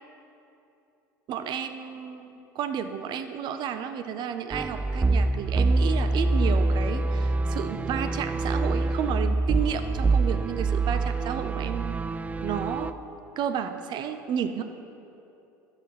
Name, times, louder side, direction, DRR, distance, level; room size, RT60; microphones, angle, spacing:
voice 1, 1.3-12.0 12.4-12.9 13.4-14.6, right 8 dB, 45° right, 9 dB, 0.7 m, -32 dB
sound 1, 4.5-12.9, right 3 dB, 15° right, 0.3 m, -25 dB
12.5 x 4.4 x 5.9 m, 2.8 s
hypercardioid pair, 80°, 10 cm